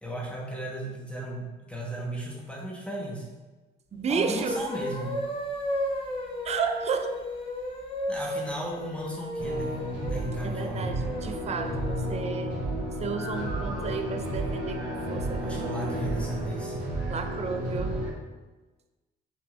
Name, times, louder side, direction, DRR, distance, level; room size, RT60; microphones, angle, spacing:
voice 1, 0.0-3.3 4.1-5.2 8.1-9.8 10.1-11.0 15.4-16.8, right 1 dB, 5° left, -4 dB, 1.1 m, -35 dB
voice 2, 3.9-4.6 6.4-7.2 10.4-12.5 13.0-15.7 17.1-17.9, right 5 dB, 35° right, 6 dB, 0.4 m, -32 dB
sound 1, 4.1-12.3, left 1 dB, 25° left, 0.9 m, -34 dB
sound 2, 9.4-18.1, right 1 dB, 85° right, 1.3 m, -32 dB
5.8 x 3.6 x 2.5 m, 1.2 s
cardioid pair, 90°, 20 cm